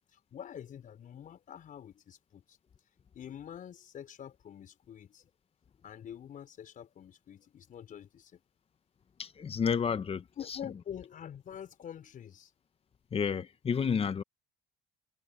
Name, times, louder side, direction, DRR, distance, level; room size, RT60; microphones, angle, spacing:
voice 1, 0.0-2.6 3.1-5.3 5.8-8.4 10.4-12.5, left 9 dB, 45° left, 5.7 m, -46 dB
voice 2, 9.2-10.2 13.1-14.2, left 6 dB, 30° left, 1.3 m, -30 dB
cardioid pair, 110°, 19 cm